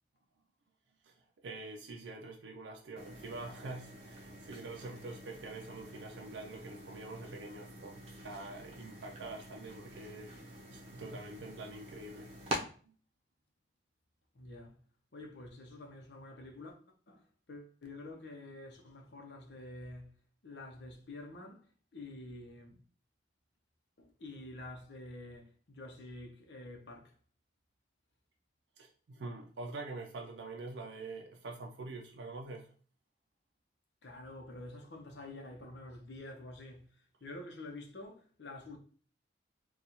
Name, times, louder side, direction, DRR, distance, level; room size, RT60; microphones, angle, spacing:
voice 1, 1.4-12.3 12.8-12.9 28.8-32.7, right 2 dB, 80° right, 0.4 m, -45 dB
sound 1, 3.0-12.6, right 1 dB, 35° right, 0.7 m, -46 dB
voice 2, 14.3-14.8 15.1-16.8 17.1-22.8 24.0-27.2 34.0-38.8, left 2 dB, 75° left, 0.8 m, -48 dB
4.0 x 2.3 x 2.9 m
head